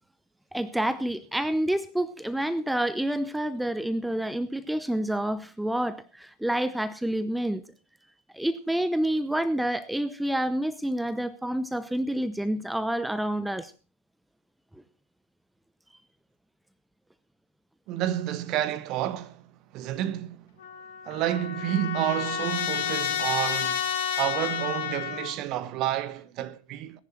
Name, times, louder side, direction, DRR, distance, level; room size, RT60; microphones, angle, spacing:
voice 1, 0.5-7.6 8.3-13.7, right 1 dB, 5° right, 0.8 m, -28 dB
voice 2, 17.9-20.4 21.1-23.8 24.2-27.0, right 12 dB, 40° right, 1.2 m, -30 dB
Trumpet, 20.6-25.3, left 9 dB, 55° left, 3.1 m, -30 dB
19.5 x 10.5 x 4.4 m
figure-of-eight pair, 90°, 0 cm